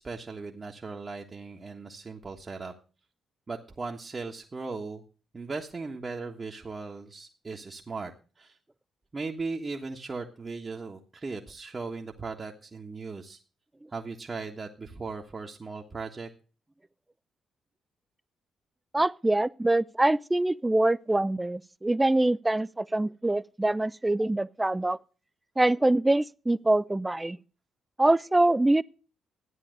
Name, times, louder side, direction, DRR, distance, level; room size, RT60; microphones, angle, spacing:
voice 1, 0.0-2.7 3.5-5.0 5.3-8.6 9.1-13.4 13.9-16.3, right 4 dB, 35° right, 1.4 m, -38 dB
voice 2, 18.9-25.0 25.6-27.4 28.0-28.8, right 2 dB, 15° right, 0.6 m, -24 dB
13.0 x 9.8 x 6.5 m
hypercardioid pair, 40°, 0 cm